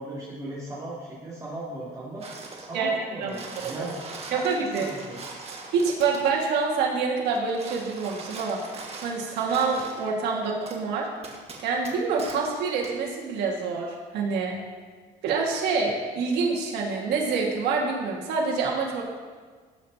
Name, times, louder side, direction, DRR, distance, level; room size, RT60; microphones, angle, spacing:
voice 1, 0.0-2.2 2.5-4.0 4.3-5.2, right 1 dB, 20° right, -9 dB, 3.1 m, -37 dB
sound 1, 2.2-2.7 3.1-6.4 7.3-10.1 10.7-10.8 11.2-12.5 12.8-13.0, right 3 dB, 35° right, 1.7 m, -41 dB
voice 2, 4.3-4.9 5.7-8.6 9.0-11.1 11.6-14.6 15.2-19.0, right 4 dB, 80° right, -2 dB, 1.8 m, -26 dB
17.5 x 7.3 x 2.8 m, 1.5 s
cardioid pair, 110°, 17 cm